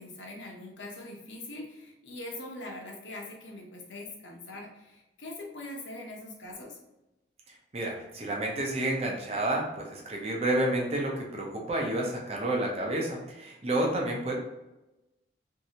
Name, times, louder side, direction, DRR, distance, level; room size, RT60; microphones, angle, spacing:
voice 1, 0.0-6.8, left 2 dB, 75° left, -1 dB, 0.8 m, -42 dB
voice 2, 7.7-14.3, right 1 dB, 35° right, -1 dB, 0.6 m, -30 dB
3.1 x 2.7 x 2.8 m, 0.97 s
head